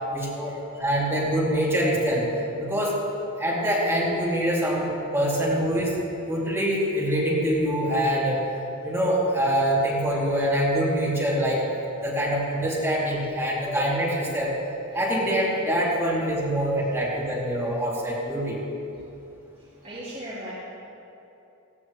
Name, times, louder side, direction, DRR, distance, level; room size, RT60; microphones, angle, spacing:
voice 1, 0.1-2.3 2.6-2.9 3.4-6.0 6.3-8.4 8.8-11.7 11.9-14.5 14.9-18.6, equal, 10° right, -7 dB, 2.8 m, -24 dB
voice 2, 19.8-20.5, right 1 dB, 30° right, -12 dB, 3.6 m, -36 dB
19.0 x 16.0 x 3.3 m, 2.9 s
head